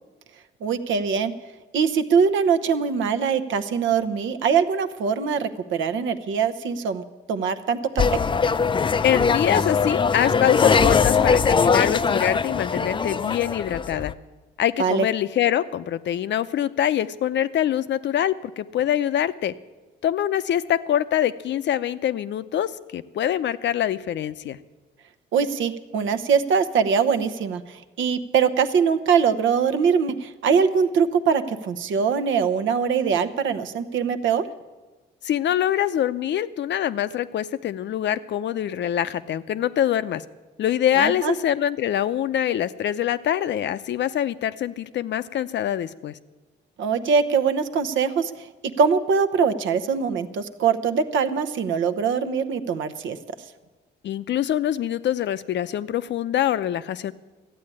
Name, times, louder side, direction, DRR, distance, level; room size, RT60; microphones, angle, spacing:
voice 1, 0.6-1.3 1.7-7.0 7.3-7.8 8.1-8.2 14.8-15.0 25.3-34.5 41.0-41.3 46.8-48.5 48.8-53.2, right 6 dB, 75° right, 9 dB, 0.9 m, -22 dB
sound 1, 8.0-14.1, left 5 dB, 25° left, 0.4 m, -21 dB
voice 2, 9.0-14.1 14.6-19.5 20.0-24.6 35.2-40.2 40.6-46.1 54.0-57.1, left 10 dB, 65° left, 13 dB, 0.6 m, -24 dB
13.5 x 8.5 x 9.9 m, 1.2 s
cardioid pair, 90°, 20 cm